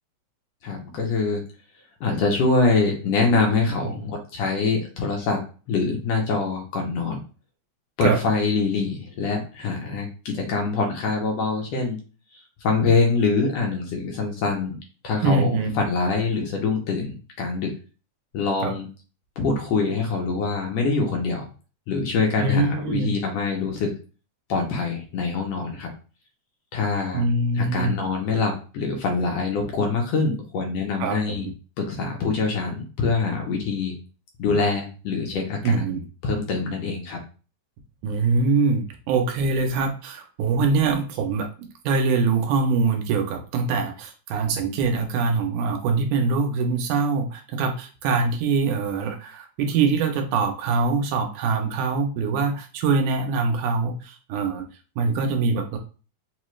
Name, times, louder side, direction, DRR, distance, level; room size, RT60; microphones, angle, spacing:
voice 1, 0.6-1.4 2.0-5.4 5.7-7.2 8.0-10.1 10.3-12.0 12.6-14.7 15.0-17.7 18.3-18.9 19.4-21.5 21.9-23.9 24.5-25.9 26.7-27.2 27.6-31.5 31.8-33.9 34.4-35.7 36.2-37.2, left 4 dB, 70° left, 1 dB, 1.7 m, -24 dB
voice 2, 15.2-15.8 18.6-18.7 22.4-23.1 27.1-28.0 31.0-31.5 35.6-36.0 38.0-54.6 55.0-55.8, right 4 dB, 90° right, 4 dB, 2.2 m, -23 dB
4.9 x 2.3 x 3.1 m, 0.35 s
omnidirectional pair, 3.4 m